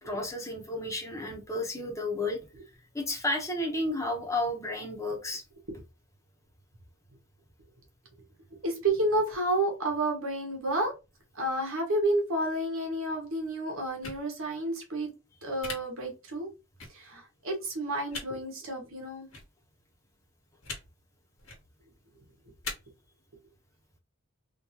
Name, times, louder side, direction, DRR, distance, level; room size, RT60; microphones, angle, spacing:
voice 1, 0.0-2.4 2.9-5.4, left 1 dB, 15° left, 1 dB, 1.0 m, -32 dB
voice 2, 8.5-10.9 11.3-15.1 15.4-16.5 16.9-19.3, right 1 dB, 80° right, 2 dB, 1.4 m, -30 dB
sound 1, 14.0-14.2 15.6-15.7 16.8-16.9 18.1-18.3 19.3-19.4 20.6-20.8 21.4-21.6 22.6-22.7, left 4 dB, 80° left, 1.5 m, -38 dB
3.7 x 2.6 x 2.9 m, 0.28 s
head